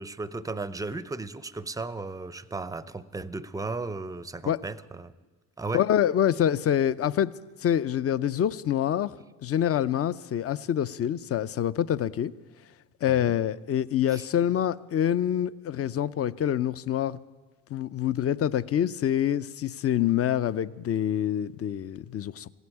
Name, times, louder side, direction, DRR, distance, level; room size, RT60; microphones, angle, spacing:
voice 1, 0.0-5.1 5.6-5.8 13.1-13.3 14.1-14.2, right 3 dB, 10° right, 0.5 m, -35 dB
voice 2, 5.7-7.3 7.6-9.1 9.4-12.3 13.0-17.2 17.7-22.5, left 10 dB, 35° left, 0.5 m, -26 dB
15.5 x 8.2 x 9.8 m
supercardioid pair, 70°, 41 cm